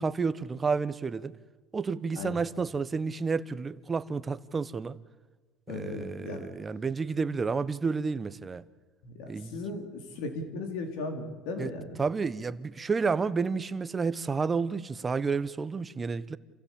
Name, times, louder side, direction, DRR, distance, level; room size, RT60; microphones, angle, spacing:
voice 1, 0.0-1.3 1.7-5.0 5.7-8.6 9.3-9.6 11.6-11.7 12.0-16.4, right 5 dB, 25° right, 1.0 m, -30 dB
voice 2, 5.7-6.5 9.0-12.0, left 3 dB, 75° left, 4.4 m, -37 dB
28.0 x 16.0 x 8.8 m
supercardioid pair, 110°, 0 cm